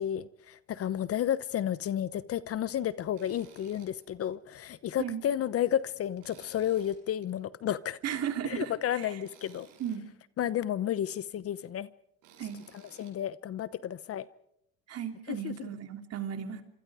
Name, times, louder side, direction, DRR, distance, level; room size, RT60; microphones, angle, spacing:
voice 1, 0.0-8.0 8.5-9.7 10.4-11.9 13.0-14.3 15.3-15.7, left 10 dB, 45° left, 0.9 m, -32 dB
Tools, 3.1-3.9 4.3-4.4 6.2-7.3 9.2-10.0 12.2-13.1, right 7 dB, 75° right, 7.9 m, -57 dB
voice 2, 8.0-9.2 9.8-10.1 12.4-12.6 14.9-16.6, right 9 dB, 45° right, 3.2 m, -35 dB
26.5 x 25.5 x 5.0 m
supercardioid pair, 90°, 33 cm